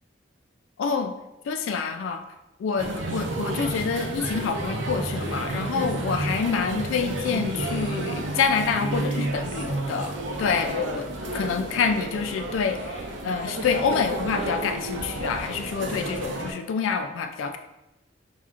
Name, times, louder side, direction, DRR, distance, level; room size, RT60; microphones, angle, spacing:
voice 1, 0.8-1.1 1.5-2.2 2.6-11.1 11.3-17.6, left 5 dB, 85° left, 6 dB, 0.3 m, -27 dB
sound 1, 2.8-16.5, right 2 dB, 75° right, 0.6 m, -31 dB
5.5 x 2.4 x 2.4 m, 0.96 s
head